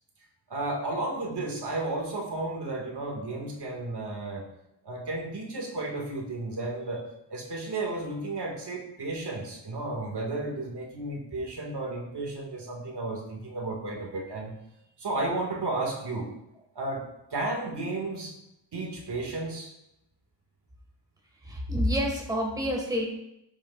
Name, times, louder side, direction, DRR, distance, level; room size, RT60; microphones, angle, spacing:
voice 1, 0.5-4.5 4.8-14.5 15.0-16.3 16.8-18.3 18.7-19.7, right 2 dB, 55° right, 0 dB, 2.0 m, -33 dB
voice 2, 21.4-23.0, equal, 10° right, -1 dB, 1.7 m, -28 dB
13.5 x 7.0 x 2.5 m, 0.83 s
wide cardioid pair, 125°, 48 cm